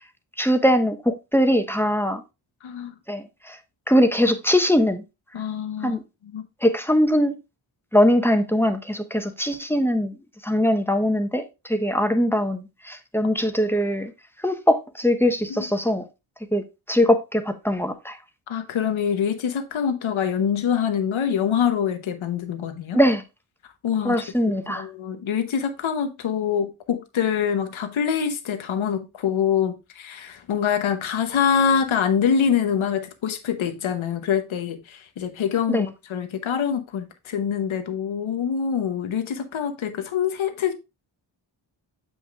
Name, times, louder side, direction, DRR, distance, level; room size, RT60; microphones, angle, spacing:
voice 1, 0.4-2.2 3.1-3.2 3.9-5.0 5.8-6.0 6.6-7.4 7.9-10.1 10.4-11.4 11.7-14.1 14.4-16.0 16.5-16.6 16.9-18.2 22.9-23.2 24.0-24.8 35.7-35.9, equal, 5° left, 1.1 m, -21 dB
voice 2, 2.6-2.9 5.3-6.4 15.5-15.7 18.5-23.0 23.8-24.2 24.6-40.7, left 7 dB, 85° left, 1.0 m, -25 dB
7.2 x 6.1 x 2.4 m
cardioid pair, 50°, 46 cm